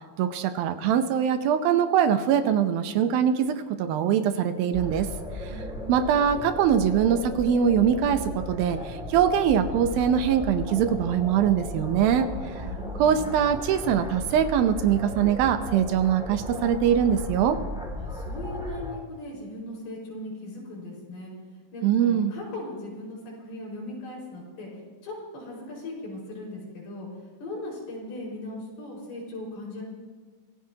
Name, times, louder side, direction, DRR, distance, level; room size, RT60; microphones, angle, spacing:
voice 1, 0.2-5.1 5.9-12.3 13.0-17.6 21.8-22.3, right 8 dB, 75° right, 9 dB, 2.4 m, -23 dB
sound 1, 4.7-19.0, equal, 5° right, 0.9 m, -36 dB
voice 2, 5.4-6.2 12.3-13.3 18.0-21.3 21.7-24.7 25.0-27.1 27.4-29.8, left 1 dB, 80° left, -4 dB, 7.0 m, -38 dB
25.0 x 16.5 x 2.9 m, 1.5 s
omnidirectional pair, 4.5 m